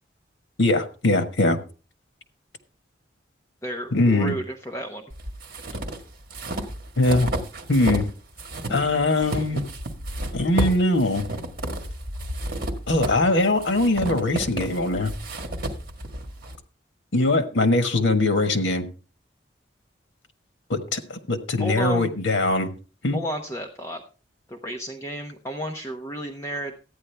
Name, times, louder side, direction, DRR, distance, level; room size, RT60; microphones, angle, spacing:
voice 1, 0.6-1.6 3.9-4.3 7.0-7.3 7.7-8.1 8.7-9.6 10.3-11.3 12.9-15.1 17.1-18.9 20.7-22.7 23.0-23.2, left 2 dB, 85° left, 7 dB, 1.5 m, -21 dB
voice 2, 3.6-5.0 21.6-22.1 23.1-24.0 24.5-26.8, right 1 dB, 15° left, 2 dB, 0.9 m, -32 dB
sound 1, 5.1-8.1 8.4-16.5, right 1 dB, 50° right, 1.6 m, -31 dB
13.5 x 9.7 x 3.4 m, 0.35 s
head